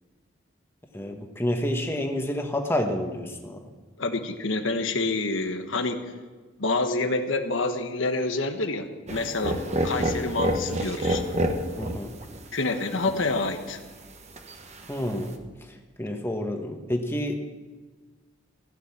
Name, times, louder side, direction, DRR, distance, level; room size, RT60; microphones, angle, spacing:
voice 1, 0.9-3.6 11.8-12.1 14.9-15.4 16.0-17.3, left 1 dB, 10° left, 3 dB, 1.5 m, -29 dB
voice 2, 4.0-6.1 6.6-9.6 9.8-11.2 12.5-13.8, left 3 dB, 75° left, 7 dB, 1.3 m, -27 dB
sound 1, 9.1-15.3, right 1 dB, 35° right, 1.2 m, -30 dB
15.5 x 6.9 x 9.8 m, 1.3 s
head